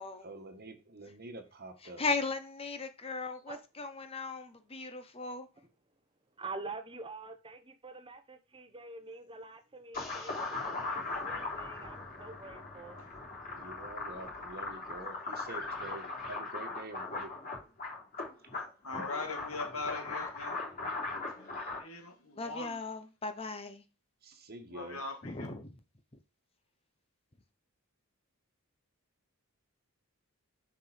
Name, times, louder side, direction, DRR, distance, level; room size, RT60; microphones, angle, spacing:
voice 1, 0.2-2.0 13.5-17.3 18.4-18.5 21.5-21.8 24.2-25.0, right 2 dB, 45° right, 1.5 m, -47 dB
voice 2, 2.0-5.5 22.4-23.8 25.2-25.7, left 3 dB, 25° left, 0.8 m, -37 dB
voice 3, 6.4-13.0, right 3 dB, 25° right, 1.0 m, -46 dB
sound 1, 9.9-21.8, left 3 dB, 40° left, 3.5 m, -39 dB
voice 4, 18.8-21.0 21.4-22.8 24.7-25.5, left 3 dB, 70° left, 2.6 m, -41 dB
6.8 x 5.7 x 5.1 m
head